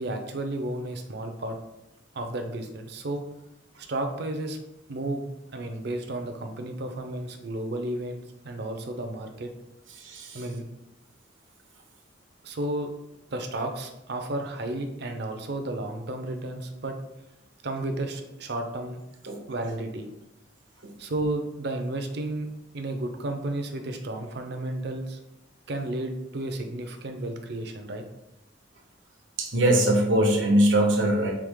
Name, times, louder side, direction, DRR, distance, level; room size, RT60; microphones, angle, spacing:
voice 1, 0.0-1.6 2.1-3.2 3.8-4.6 4.9-9.5 10.3-10.6 12.4-12.9 13.3-17.0 17.6-19.0 19.5-20.1 21.0-22.5 22.7-25.2 25.7-28.0, right 1 dB, 60° right, 5 dB, 0.6 m, -32 dB
voice 2, 10.0-10.4 19.3-19.4 20.8-20.9 29.4-31.3, right 1 dB, 90° right, 1 dB, 1.0 m, -22 dB
4.9 x 2.9 x 3.6 m, 0.89 s
head